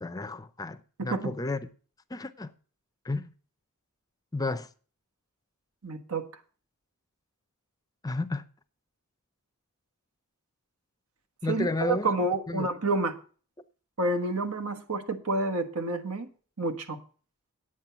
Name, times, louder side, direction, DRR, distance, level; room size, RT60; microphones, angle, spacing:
voice 1, 0.0-1.6 2.1-2.5 3.1-3.3 4.3-4.7 8.0-8.4 11.4-12.1 12.5-12.7, left 2 dB, 15° left, 0.5 m, -32 dB
voice 2, 1.0-1.3 5.8-6.3 11.5-13.1 14.0-16.3 16.6-17.0, right 2 dB, 75° right, 1.4 m, -29 dB
9.0 x 8.9 x 5.7 m
head